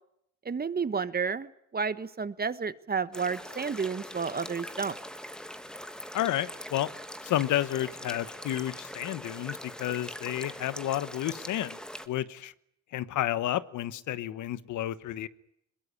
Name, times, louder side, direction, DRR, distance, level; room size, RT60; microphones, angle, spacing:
voice 1, 0.4-4.9, right 5 dB, 30° right, 14 dB, 1.4 m, -31 dB
sound 1, 3.1-12.1, equal, 5° left, 1.8 m, -42 dB
voice 2, 6.1-6.9 7.2-11.8 12.1-12.5 12.9-15.3, left 13 dB, 80° left, 15 dB, 1.2 m, -31 dB
21.5 x 21.5 x 9.7 m, 0.77 s
cardioid pair, 90°, 30 cm